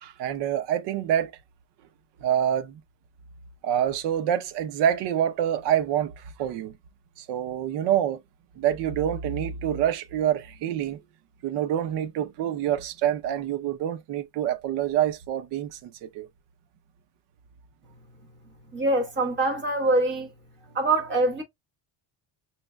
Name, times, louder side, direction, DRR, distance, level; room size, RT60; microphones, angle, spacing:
voice 1, 0.0-1.3 2.2-2.8 3.6-6.7 7.2-8.2 8.6-11.0 11.4-16.3, right 10 dB, 70° right, 0.7 m, -26 dB
voice 2, 18.7-20.3 20.7-21.4, right 2 dB, 25° right, 1.2 m, -24 dB
6.1 x 2.8 x 2.2 m
cardioid pair, 165°, 42 cm